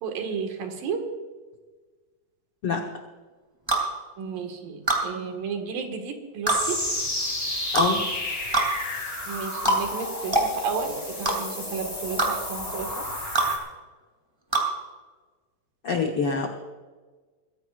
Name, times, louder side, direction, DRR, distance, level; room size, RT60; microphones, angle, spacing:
voice 1, 0.0-1.0 4.2-6.8 9.3-10.3 10.6-12.9, right 5 dB, 70° right, 4 dB, 3.5 m, -32 dB
sound 1, 3.7-3.9 4.9-5.0 6.5-6.6 7.7-7.9 8.5-8.7 9.6-9.8 10.3-10.5 11.2-11.4 12.2-12.3 13.3-13.5 14.5-14.7, right 2 dB, 10° right, 2.3 m, -22 dB
sound 2, 6.5-13.6, left 1 dB, 10° left, 2.2 m, -31 dB
voice 2, 15.8-16.5, left 5 dB, 70° left, 2 dB, 1.3 m, -25 dB
23.0 x 16.5 x 2.5 m, 1.3 s
omnidirectional pair, 4.3 m